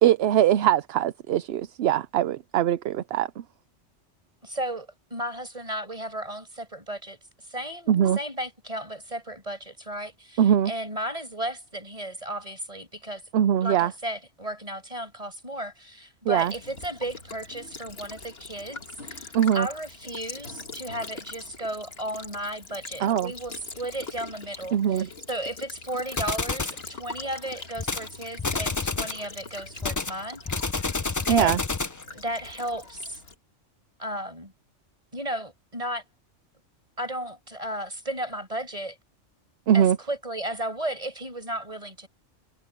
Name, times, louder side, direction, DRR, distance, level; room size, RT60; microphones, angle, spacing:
voice 1, 0.0-3.3 7.9-8.2 10.4-10.7 13.3-13.9 16.3-16.5 19.3-19.7 23.0-23.3 24.7-25.1 31.3-31.6 39.7-40.0, right 10 dB, 65° right, 0.7 m, -22 dB
voice 2, 4.4-7.2 7.5-13.2 13.6-30.6 31.3-31.6 32.1-33.2 34.0-34.5 35.1-36.0 37.0-39.0 39.7-42.1, right 1 dB, 30° right, 5.6 m, -34 dB
Child speech kid speaking / Bird vocalization bird call bird song / Stream, 16.3-33.3, left 3 dB, 55° left, 2.3 m, -43 dB
sound 1, 26.2-26.8 27.8-28.1 28.4-29.2 29.8-32.0, left 3 dB, 20° left, 0.5 m, -29 dB
omnidirectional pair, 1.3 m